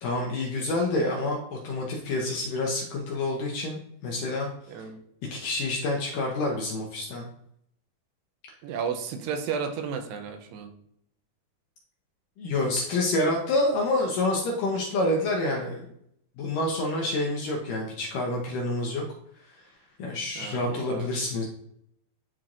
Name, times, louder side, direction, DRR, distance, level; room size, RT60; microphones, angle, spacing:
voice 1, 0.0-4.5 5.3-7.3 12.4-15.9 16.4-19.0 20.0-21.4, left 2 dB, 75° left, -1 dB, 2.0 m, -28 dB
voice 2, 4.7-5.0 8.6-10.7 20.4-21.1, right 6 dB, 85° right, 7 dB, 2.8 m, -33 dB
10.5 x 4.4 x 2.5 m, 0.71 s
omnidirectional pair, 4.8 m